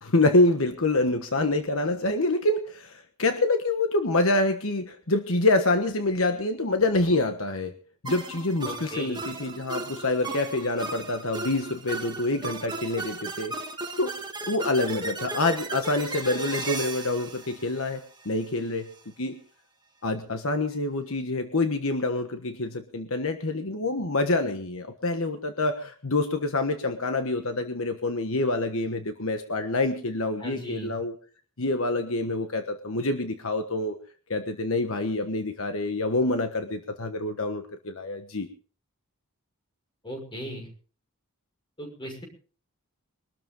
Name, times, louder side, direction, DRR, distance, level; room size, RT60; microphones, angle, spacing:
voice 1, 0.0-7.7 8.0-13.5 14.0-14.1 14.5-18.9 19.2-19.4 20.0-31.1 31.6-34.0 34.3-38.5, left 2 dB, 65° left, 7 dB, 1.4 m, -26 dB
sound 1, 8.1-18.4, right 3 dB, 20° right, 2.1 m, -36 dB
voice 2, 8.6-9.2 30.4-30.9 40.0-40.7 41.8-42.3, equal, 20° left, 2 dB, 6.2 m, -37 dB
23.0 x 13.0 x 3.9 m, 0.40 s
head